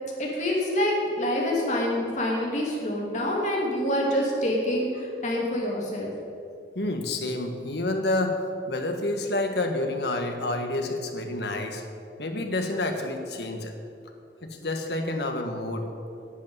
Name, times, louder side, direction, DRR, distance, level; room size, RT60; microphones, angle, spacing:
voice 1, 0.2-6.1, left 1 dB, 45° left, -3 dB, 2.9 m, -26 dB
voice 2, 6.7-8.4 8.7-11.8 12.2-13.7 14.4-15.9, left 2 dB, 70° left, 4 dB, 1.5 m, -29 dB
10.5 x 8.1 x 9.2 m, 2.5 s
head